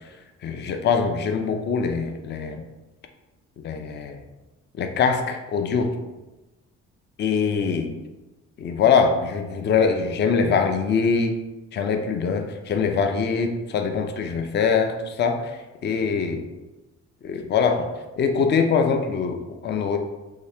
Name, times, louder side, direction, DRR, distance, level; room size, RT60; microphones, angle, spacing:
voice 1, 0.4-2.6 3.6-4.2 4.8-6.0 7.2-8.0 8.6-11.4 11.7-16.4 17.2-17.9 18.2-20.0, left 5 dB, 35° left, 6 dB, 0.4 m, -23 dB
2.8 x 2.8 x 3.3 m, 1.1 s
cardioid pair, 90°, 30 cm